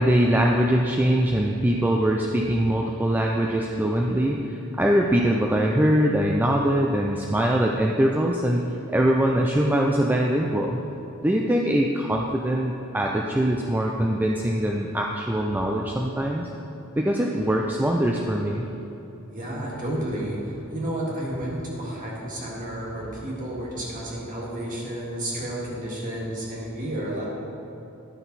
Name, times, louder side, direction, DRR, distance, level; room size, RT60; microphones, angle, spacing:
voice 1, 0.0-10.8 11.2-16.5 17.0-18.7, right 1 dB, 10° right, 0 dB, 0.3 m, -22 dB
voice 2, 19.3-27.3, right 1 dB, 35° right, -4 dB, 1.9 m, -31 dB
11.5 x 6.0 x 4.0 m, 3.0 s
head